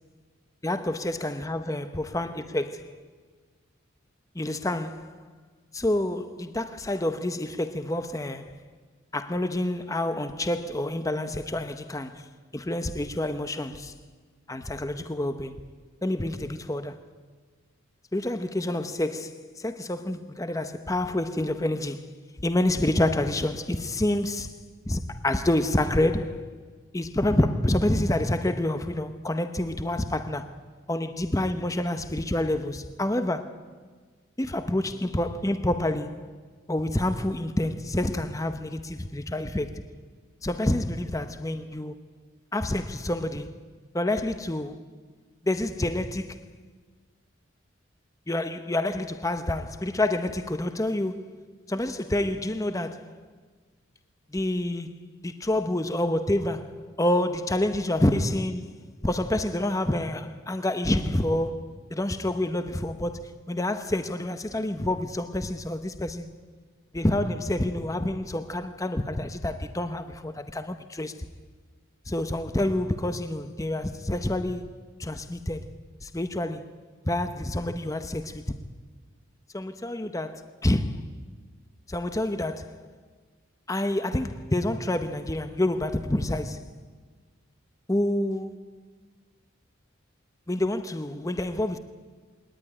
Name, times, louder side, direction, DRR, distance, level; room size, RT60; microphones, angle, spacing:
voice 1, 0.6-2.9 4.3-5.2 5.7-8.6 9.1-12.3 12.5-13.9 14.5-15.6 16.0-17.0 18.1-22.1 22.4-24.6 24.9-26.5 26.9-30.5 30.9-33.6 34.4-36.3 36.7-39.8 40.4-41.9 42.5-43.6 43.9-44.8 45.4-46.4 48.3-51.4 51.7-53.2 54.3-58.7 59.0-61.6 61.9-66.3 66.9-71.1 72.1-74.7 75.0-75.7 76.0-76.7 77.0-78.6 79.5-81.1 81.9-82.8 83.7-86.6 87.9-88.7 90.5-91.8, left 1 dB, 15° left, 0.8 m, -28 dB
20.5 x 19.0 x 9.8 m
head